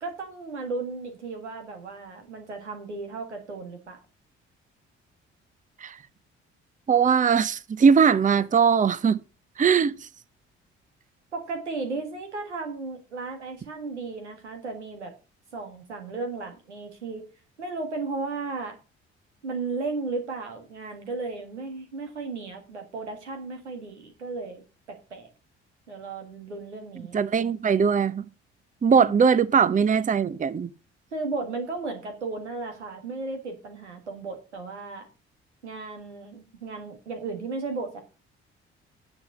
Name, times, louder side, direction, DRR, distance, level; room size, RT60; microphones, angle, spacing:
voice 1, 0.0-4.0 11.3-15.1 15.5-17.2 17.6-18.8 19.4-24.6 25.1-25.3 25.9-27.2 29.0-29.2 31.1-35.1 35.6-38.0, right 3 dB, 85° right, 1.8 m, -35 dB
voice 2, 6.9-9.2 9.6-10.0 27.1-28.2 28.8-30.7, right 6 dB, 25° right, 0.7 m, -20 dB
9.7 x 7.2 x 5.4 m
figure-of-eight pair, 45°, 34 cm